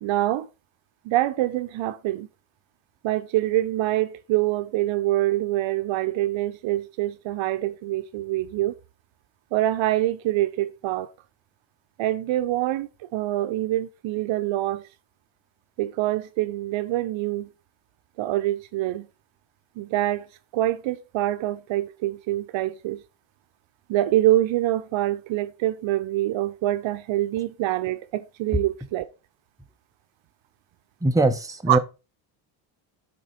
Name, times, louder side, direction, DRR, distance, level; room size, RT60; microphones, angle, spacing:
voice 1, 0.0-0.5 1.0-2.3 3.0-8.7 9.5-11.1 12.0-14.9 15.8-17.5 18.2-19.1 19.8-20.3 20.5-23.0 23.9-29.1 31.7-31.8, right 15 dB, 70° right, 0.8 m, -25 dB
voice 2, 31.0-31.8, right 2 dB, 5° right, 0.9 m, -21 dB
7.0 x 4.5 x 5.1 m
cardioid pair, 100°, 49 cm